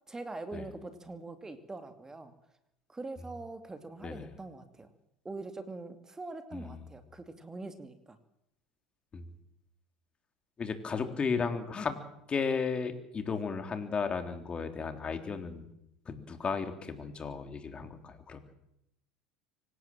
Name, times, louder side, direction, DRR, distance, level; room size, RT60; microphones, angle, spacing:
voice 1, 0.1-2.3 2.9-4.9 5.2-8.2 11.4-11.5 13.3-13.4, right 3 dB, 15° right, 8 dB, 2.6 m, -43 dB
voice 2, 10.6-12.0 12.3-15.7 16.1-18.4, left 5 dB, 30° left, 6 dB, 3.7 m, -34 dB
25.0 x 18.5 x 7.5 m, 0.80 s
hypercardioid pair, 80°, 4 cm